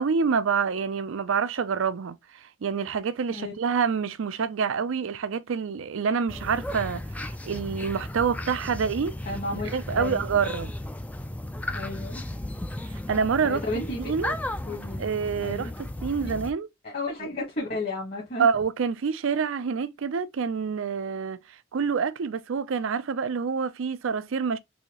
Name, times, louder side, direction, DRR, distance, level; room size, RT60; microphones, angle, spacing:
voice 1, 0.0-9.1 9.7-10.7 12.9-13.6 14.0-14.4 15.0-15.7 16.0-16.7 17.2-17.3 18.4-24.6, right 6 dB, 70° right, 0.4 m, -27 dB
sound 1, 6.3-16.5, left 1 dB, 5° left, 0.3 m, -35 dB
voice 2, 9.2-10.2 11.7-12.2 13.4-14.1 14.7-15.0 15.4-15.7 16.2-16.3 16.8-18.5, left 2 dB, 45° left, 1.4 m, -33 dB
4.2 x 2.7 x 2.9 m
head